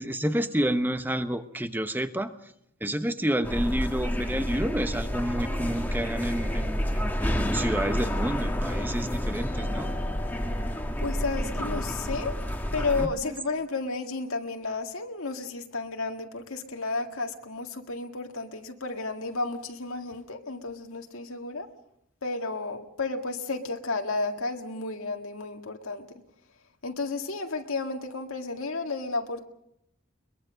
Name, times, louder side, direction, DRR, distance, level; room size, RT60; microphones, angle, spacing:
voice 1, 0.0-2.3 2.8-10.1 13.0-13.4, right 1 dB, 10° right, 10 dB, 1.0 m, -30 dB
sound 1, 3.4-13.1, equal, 10° left, 1.5 m, -29 dB
voice 2, 11.0-12.3 12.7-21.7 22.2-26.1 26.8-29.5, left 3 dB, 80° left, 4 dB, 1.9 m, -32 dB
22.5 x 21.5 x 6.4 m, 0.77 s
head